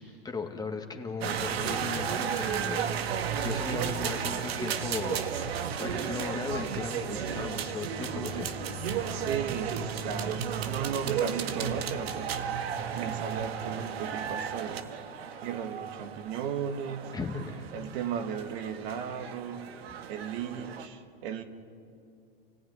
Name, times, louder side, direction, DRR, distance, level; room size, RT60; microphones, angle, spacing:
voice 1, 0.0-2.8 3.4-8.5 13.0-13.2 17.1-17.7, left 4 dB, 15° left, 4 dB, 2.1 m, -37 dB
sound 1, 1.2-20.9, right 7 dB, 85° right, 1.8 m, -34 dB
voice 2, 3.7-4.1 4.7-4.9 8.1-8.6 9.2-14.9 15.4-17.1 17.7-19.7 20.1-21.4, right 7 dB, 60° right, 6 dB, 2.1 m, -36 dB
29.0 x 15.5 x 9.9 m, 2.5 s
supercardioid pair, 125°, 30 cm